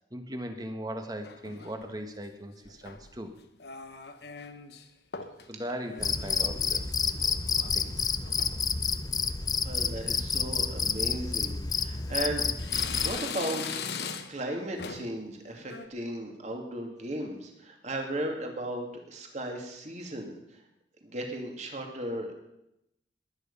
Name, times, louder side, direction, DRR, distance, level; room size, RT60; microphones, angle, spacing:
voice 1, 0.1-3.3 5.5-6.9 7.7-8.1, equal, 20° right, 6 dB, 1.5 m, -38 dB
sound 1, 1.2-2.0 2.7-3.2 3.6-4.9 5.1-5.5 5.8-7.8 8.1-8.6 9.1-9.4 9.8-9.9 10.8-11.0 11.6-12.2 12.6-14.5 14.8-15.2 15.6-15.9, left 6 dB, 60° left, 1.2 m, -40 dB
Cricket, 6.0-13.2, left 5 dB, 20° left, 0.6 m, -29 dB
voice 2, 9.6-12.7 13.0-20.3 21.0-22.3, right 1 dB, 40° right, 2 dB, 2.5 m, -36 dB
21.0 x 9.5 x 5.5 m, 0.83 s
head